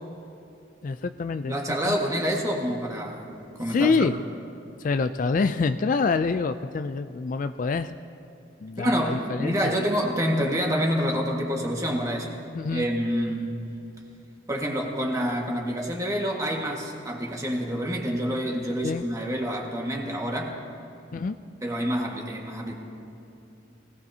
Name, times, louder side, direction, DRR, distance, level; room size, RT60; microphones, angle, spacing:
voice 1, 0.8-1.6 1.8-2.0 3.7-4.2 4.8-7.9 8.6-9.8 12.5-12.9 18.8-19.0 21.1-21.4, left 4 dB, 45° left, 10 dB, 0.3 m, -26 dB
voice 2, 1.5-4.1 8.8-12.4 12.7-13.6 14.5-20.6 21.6-22.7, equal, 20° right, -1 dB, 1.7 m, -27 dB
24.0 x 17.5 x 2.8 m, 2.7 s
head